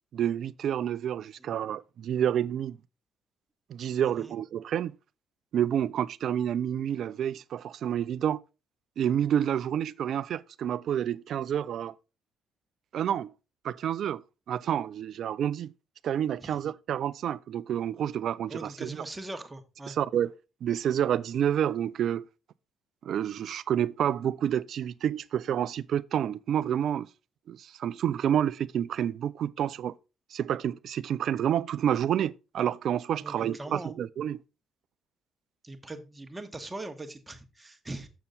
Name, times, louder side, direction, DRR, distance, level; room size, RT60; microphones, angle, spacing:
voice 1, 0.1-2.8 3.7-4.9 5.5-8.4 9.0-11.9 12.9-13.3 13.6-14.2 14.5-15.7 16.0-19.0 19.9-20.3 20.6-22.2 23.0-27.1 27.5-29.9 30.3-34.4, right 9 dB, 60° right, 0.4 m, -29 dB
voice 2, 4.0-4.3 16.4-16.6 18.5-20.0 33.2-34.0 35.6-38.1, right 2 dB, 20° right, 1.5 m, -41 dB
6.9 x 6.8 x 4.0 m
hypercardioid pair, 55°, 0 cm